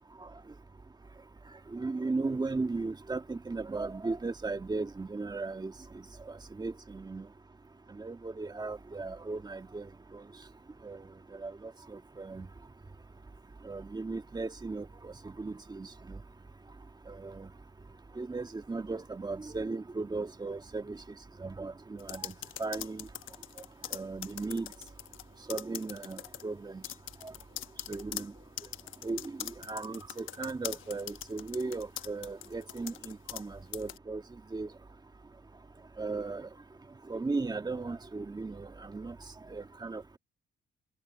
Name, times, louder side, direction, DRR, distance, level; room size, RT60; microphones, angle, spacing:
voice 1, 1.7-5.7 6.6-7.3 8.0-10.2 10.8-11.0 11.3-12.5 13.6-16.2 17.1-17.5 18.2-21.0 21.4-22.3 22.6-23.1 23.9-24.7 25.5-26.8 27.2-27.3 27.9-28.3 29.0-34.2 34.5-34.7 36.0-36.5 37.1-39.1 39.5-40.2, right 3 dB, 20° right, 1.7 m, -36 dB
sound 1, 22.0-25.2 25.5-26.4 26.8-33.5 33.7-34.0, left 13 dB, 80° left, 1.1 m, -41 dB
cardioid pair, 90°, 20 cm